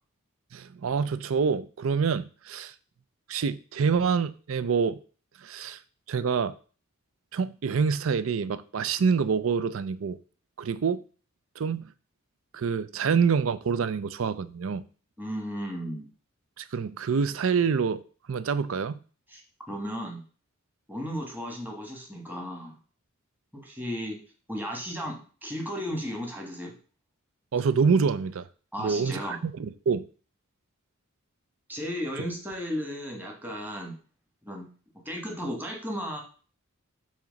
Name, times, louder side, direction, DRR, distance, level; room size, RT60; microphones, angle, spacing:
voice 1, 0.5-2.7 3.3-5.0 5.4-5.8 6.1-6.6 7.3-10.2 10.6-11.0 11.6-11.9 12.5-14.8 16.6-18.0 18.3-18.9 27.5-28.5 28.8-30.0, right 5 dB, 65° right, 0.4 m, -26 dB
voice 2, 15.2-16.1 19.3-19.4 19.7-20.2 20.9-22.8 23.5-24.2 24.5-26.7 28.7-29.4 31.7-34.0 34.4-34.7 35.0-36.2, equal, 10° right, 1.4 m, -34 dB
7.2 x 3.0 x 5.1 m
head